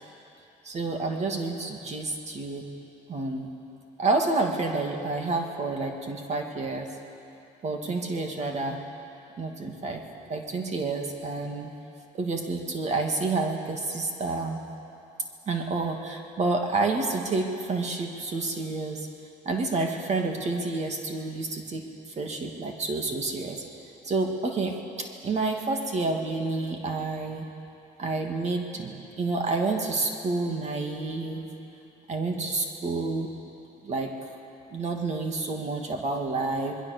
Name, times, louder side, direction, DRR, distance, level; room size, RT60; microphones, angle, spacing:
voice 1, 0.6-2.7 3.1-3.5 4.0-6.9 7.6-8.8 9.4-10.0 10.3-11.7 12.1-14.6 15.5-19.1 19.4-21.8 22.2-23.6 24.0-27.5 28.0-31.5 32.1-33.3 33.8-34.2 34.7-36.8, right 3 dB, 40° right, 3 dB, 2.6 m, -29 dB
27.0 x 21.5 x 7.0 m, 2.7 s
cardioid pair, 110°, 17 cm